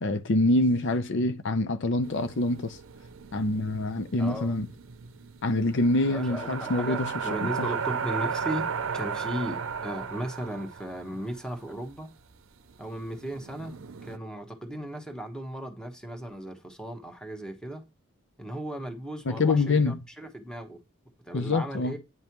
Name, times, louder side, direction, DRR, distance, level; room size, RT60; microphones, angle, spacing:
voice 1, 0.0-2.8 3.3-4.7 5.4-7.1 7.4-7.7 19.3-20.0 21.3-21.9, left 2 dB, 60° left, 0.6 m, -25 dB
sound 1, 2.0-11.5 11.9-12.0 12.6-14.2, right 6 dB, 75° right, 0.6 m, -35 dB
voice 2, 4.2-4.5 6.1-8.7 8.9-12.1 12.8-13.8 14.0-17.8 18.4-20.8 21.2-22.0, right 1 dB, 5° left, 1.2 m, -36 dB
9.4 x 5.3 x 3.0 m
head